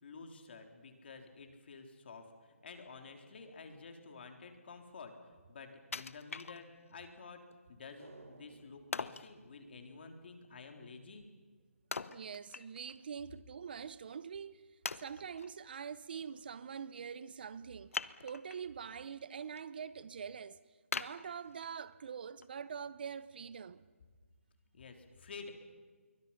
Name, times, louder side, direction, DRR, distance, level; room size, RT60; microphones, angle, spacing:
voice 1, 0.0-5.1 5.5-7.4 7.7-11.3 24.7-25.5, left 4 dB, 50° left, 3.6 m, -51 dB
Wood, 5.9-7.0 7.5-7.6 8.9-9.3 11.9-13.0 13.4-13.5 14.1-14.2 14.9-15.5 17.9-18.7 19.2-19.6 20.0-20.1 20.9-21.9 22.4-22.5, left 4 dB, 75° left, 1.0 m, -42 dB
sound 1, 8.0-10.5 10.8-10.9, right 3 dB, 85° right, 3.5 m, -59 dB
voice 2, 12.1-20.6 20.9-23.9, right 7 dB, 45° right, 0.7 m, -45 dB
28.0 x 23.5 x 5.8 m
hypercardioid pair, 165°, 7 cm